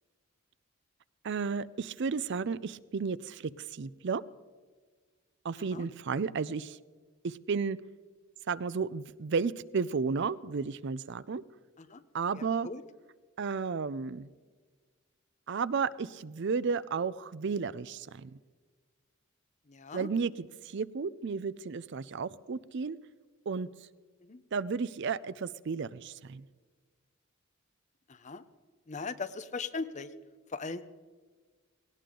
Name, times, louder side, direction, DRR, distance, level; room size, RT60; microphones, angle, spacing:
voice 1, 1.2-4.2 5.4-6.8 7.2-7.8 8.5-11.4 12.1-12.7 13.4-14.3 15.5-18.4 19.9-23.0 23.5-23.7 24.5-26.5, right 5 dB, 60° right, 18 dB, 0.5 m, -33 dB
voice 2, 5.6-5.9 11.8-12.0 12.3-12.8 19.7-20.1 24.2-24.4 28.1-28.4 28.9-30.1 30.5-30.8, left 4 dB, 35° left, 12 dB, 0.7 m, -39 dB
18.0 x 18.0 x 3.8 m, 1.5 s
head